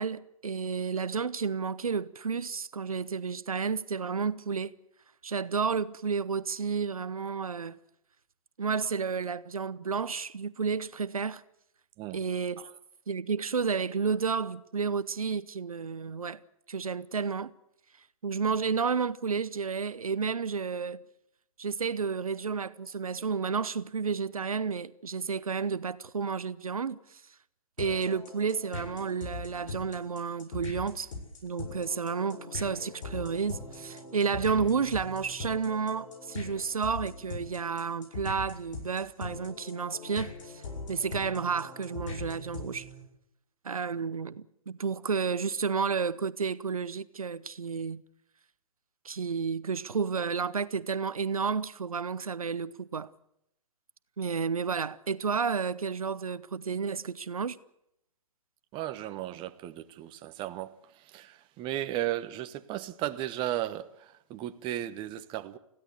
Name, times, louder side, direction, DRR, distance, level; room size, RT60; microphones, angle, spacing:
voice 1, 0.0-4.7 5.2-7.8 8.6-11.4 12.1-12.6 13.1-16.4 16.7-17.5 18.2-21.0 21.6-27.2 27.8-31.1 31.4-40.6 40.9-42.9 43.6-48.0 49.0-53.1 54.2-57.6, right 5 dB, 80° right, 0.9 m, -31 dB
sound 1, 27.8-43.0, left 3 dB, 65° left, 7.8 m, -41 dB
voice 2, 58.7-65.6, right 13 dB, 25° right, 1.2 m, -35 dB
21.5 x 16.0 x 8.3 m
figure-of-eight pair, 120°, 18 cm